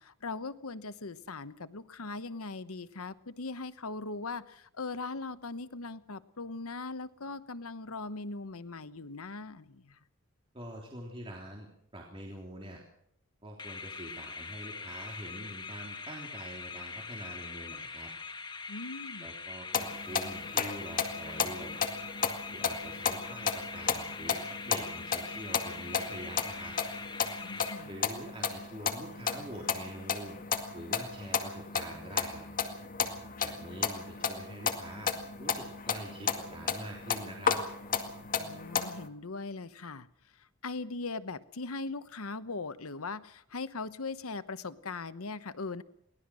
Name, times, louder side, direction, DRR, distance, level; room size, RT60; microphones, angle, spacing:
voice 1, 0.0-10.0 18.7-19.3 27.4-27.9 38.4-40.1 40.4-45.8, left 3 dB, 75° left, 13 dB, 1.0 m, -40 dB
voice 2, 10.5-12.8 13.4-18.1 19.2-21.8 22.5-24.4 24.6-26.7 27.9-30.4 30.7-32.5 33.4-35.1 35.4-37.6, right 1 dB, 25° right, -1 dB, 3.4 m, -45 dB
sound 1, 13.6-28.2, left 4 dB, 20° left, 1.4 m, -43 dB
sound 2, 19.7-39.1, left 6 dB, 40° left, 2.0 m, -34 dB
23.0 x 18.0 x 6.3 m, 0.72 s
head